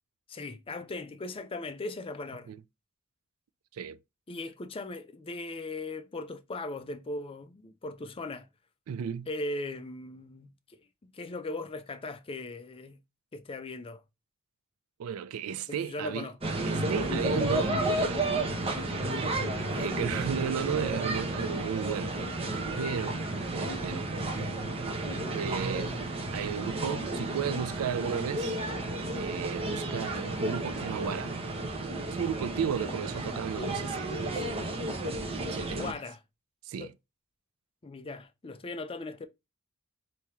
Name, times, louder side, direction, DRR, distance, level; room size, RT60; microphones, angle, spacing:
voice 1, 0.3-2.5 4.3-8.5 9.3-13.0 13.3-14.0 15.7-16.5 19.7-20.0 35.7-36.2 36.7-36.9 37.8-39.3, left 2 dB, 25° left, 0.4 m, -39 dB
voice 2, 8.9-9.3 15.0-16.3 16.7-18.3 19.8-22.2 22.8-23.2 23.5-24.1 25.3-26.0 26.3-28.6 29.1-31.4 32.0-34.4 35.5-35.9 36.7-36.9, right 7 dB, 85° right, 0.4 m, -34 dB
sound 1, 16.4-35.9, right 2 dB, 25° right, 0.8 m, -32 dB
3.5 x 2.8 x 2.9 m
head